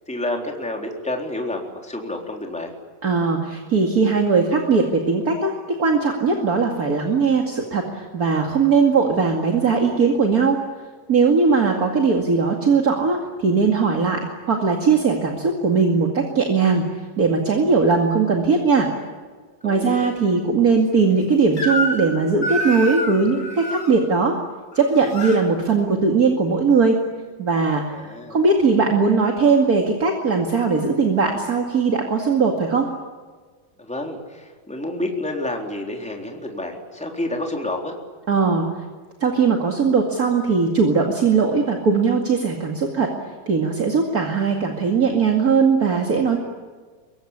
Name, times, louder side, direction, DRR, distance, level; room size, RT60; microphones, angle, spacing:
voice 1, 0.1-2.7 11.5-11.8 19.6-20.1 27.9-28.4 33.8-37.9, left 1 dB, ahead, 1 dB, 3.5 m, -29 dB
voice 2, 3.0-5.5 5.8-10.6 11.1-14.2 14.5-16.8 17.2-18.9 19.6-24.4 24.7-27.0 27.4-27.8 28.3-32.9 38.3-38.7 39.2-43.1 43.5-46.4, right 4 dB, 30° right, 2 dB, 2.2 m, -19 dB
Crying sobbing / Screech, 21.6-22.1 22.4-23.9 24.7-25.4, equal, 25° left, 3.7 m, -26 dB
24.5 x 23.0 x 9.9 m, 1.5 s
omnidirectional pair, 3.9 m